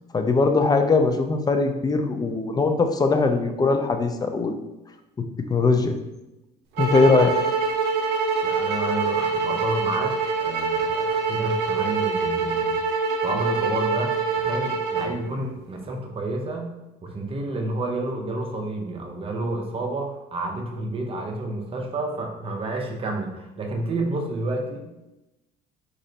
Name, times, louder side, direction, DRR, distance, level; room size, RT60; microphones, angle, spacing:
voice 1, 0.1-4.5 5.5-5.9 6.8-7.3, left 3 dB, 25° left, 6 dB, 0.4 m, -20 dB
sound 1, 6.8-15.1, right 4 dB, 80° right, 0.6 m, -25 dB
voice 2, 8.4-12.8 13.2-16.7 17.0-25.0, right 2 dB, 35° right, 2 dB, 0.6 m, -30 dB
3.9 x 3.1 x 2.8 m, 0.97 s
cardioid pair, 110°, 17 cm